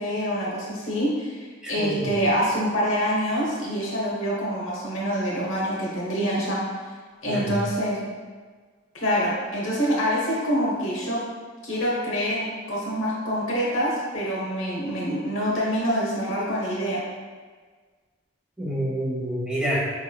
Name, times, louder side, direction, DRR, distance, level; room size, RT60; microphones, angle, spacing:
voice 1, 0.0-6.6 7.2-8.0 8.9-11.2 11.6-17.0, equal, 90° left, -5 dB, 1.0 m, -26 dB
voice 2, 1.6-2.1 7.3-7.6 18.6-19.8, equal, 5° right, -6 dB, 0.8 m, -28 dB
4.5 x 3.2 x 2.2 m, 1.5 s
head